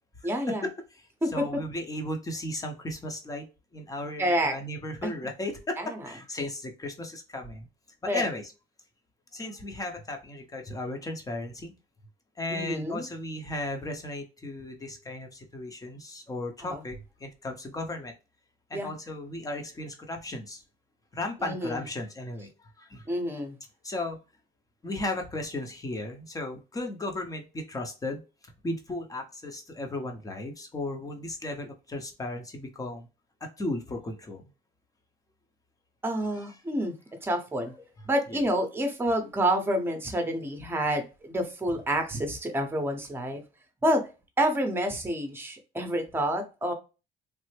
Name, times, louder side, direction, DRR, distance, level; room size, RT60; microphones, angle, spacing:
voice 1, 0.2-0.6 1.2-1.5 4.2-4.6 5.0-5.1 5.8-6.0 8.1-8.2 12.5-13.0 16.6-16.8 18.7-18.9 21.4-21.8 23.1-23.5 36.0-36.9 37.2-37.7 38.1-43.4 43.8-44.0 44.4-46.7, right 1 dB, 15° right, 5 dB, 0.8 m, -28 dB
voice 2, 1.3-3.4 3.7-7.7 8.0-8.5 9.3-11.7 12.4-18.1 18.7-20.6 21.1-22.5 22.8-23.0 23.8-24.2 24.8-28.2 28.6-33.1 33.6-34.4 38.3-38.4, left 2 dB, 20° left, 4 dB, 0.8 m, -35 dB
3.2 x 2.0 x 3.2 m, 0.30 s
cardioid pair, 110°, 17 cm